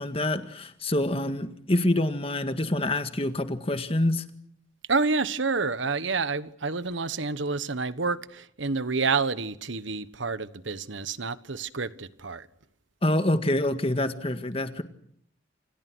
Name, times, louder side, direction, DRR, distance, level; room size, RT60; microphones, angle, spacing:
voice 1, 0.0-4.2 13.0-14.8, left 1 dB, 30° left, 1.9 m, -26 dB
voice 2, 4.9-12.5, right 4 dB, 70° right, 1.3 m, -28 dB
29.0 x 26.5 x 6.3 m
head